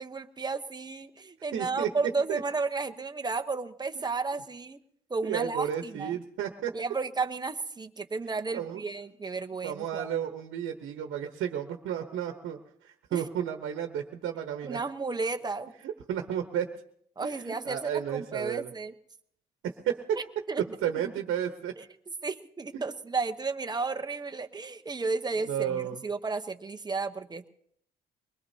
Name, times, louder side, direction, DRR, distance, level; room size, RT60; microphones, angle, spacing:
voice 1, 0.0-4.8 5.1-6.2 6.7-10.1 13.1-13.2 14.6-15.7 17.2-18.9 20.2-20.6 22.2-27.5, right 4 dB, 20° right, 6 dB, 0.9 m, -33 dB
voice 2, 1.5-1.9 2.3-2.4 5.2-6.7 8.5-8.8 9.6-14.8 15.8-16.7 17.2-18.7 19.6-20.2 20.6-21.7 22.7-22.8 25.5-26.0, right 9 dB, 80° right, 5 dB, 1.1 m, -32 dB
23.5 x 20.0 x 2.8 m, 0.67 s
cardioid pair, 90°, 20 cm